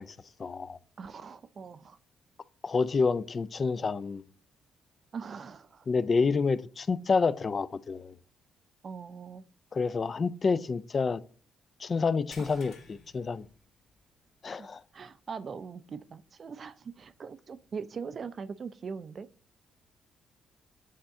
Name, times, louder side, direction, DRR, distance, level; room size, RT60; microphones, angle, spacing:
voice 1, 0.0-0.8 2.6-4.2 5.9-8.2 9.7-11.2 11.8-13.4 14.4-14.8, left 4 dB, 45° left, 0.5 m, -28 dB
voice 2, 1.0-2.0 5.1-5.9 8.8-9.4 12.4-12.7 14.6-14.7 14.9-19.3, right 5 dB, 50° right, 0.5 m, -41 dB
sound 1, 12.3-14.2 14.5-14.7 15.2-15.3 17.0-17.1, left 4 dB, 75° left, 1.8 m, -54 dB
8.5 x 4.3 x 3.7 m
supercardioid pair, 65°, 0 cm